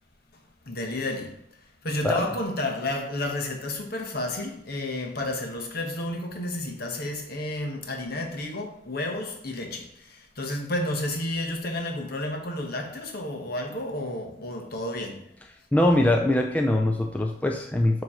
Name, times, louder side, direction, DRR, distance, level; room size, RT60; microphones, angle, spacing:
voice 1, 0.6-1.3 1.8-15.2, left 1 dB, 55° left, 1.2 m, -31 dB
voice 2, 15.7-18.0, left 1 dB, 10° left, 0.4 m, -22 dB
7.4 x 3.1 x 5.6 m
head